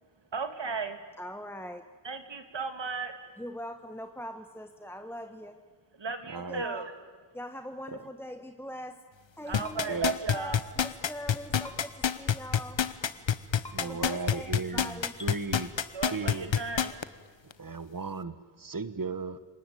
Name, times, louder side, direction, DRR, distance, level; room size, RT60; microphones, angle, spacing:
voice 1, 0.3-1.0 2.0-3.1 6.0-6.9 9.5-10.6 15.9-17.0, right 5 dB, 75° right, 8 dB, 2.6 m, -35 dB
voice 2, 1.2-1.9 3.4-5.6 6.3-6.9 7.3-9.0 9.4-12.9 13.8-15.1, equal, 5° left, 7 dB, 1.3 m, -42 dB
voice 3, 6.3-6.6 7.9-8.1 9.9-10.1 13.7-15.7 16.0-16.5 17.4-19.4, right 4 dB, 50° right, 13 dB, 1.5 m, -36 dB
sound 1, 9.5-17.0 17.5-17.6, left 8 dB, 85° left, 1.1 m, -26 dB
sound 2, 9.6-9.8 11.6-11.8 13.6-13.8 15.2-15.3, left 2 dB, 60° left, 3.2 m, -44 dB
29.5 x 19.0 x 9.3 m, 1.5 s
wide cardioid pair, 70°, 44 cm